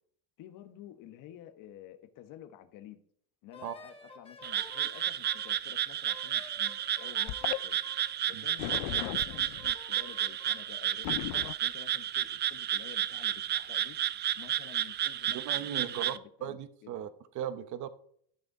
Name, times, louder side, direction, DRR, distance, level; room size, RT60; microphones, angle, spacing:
voice 1, 0.4-3.0 3.4-7.8 8.3-11.3 11.6-14.0 14.3-17.1, left 12 dB, 65° left, 1.2 m, -51 dB
Wind instrument woodwind instrument, 3.5-5.5 6.1-8.1 8.7-10.7, left 2 dB, 15° left, 2.2 m, -51 dB
Frog, 4.4-16.2, right 11 dB, 30° right, 0.4 m, -32 dB
sound 1, 7.3-7.6 8.6-9.7 11.0-11.5, left 20 dB, 90° left, 0.5 m, -36 dB
voice 2, 15.3-16.2 16.4-17.1 17.3-17.9, right 10 dB, 55° right, 1.0 m, -37 dB
12.5 x 6.5 x 4.8 m
cardioid pair, 125°, 35 cm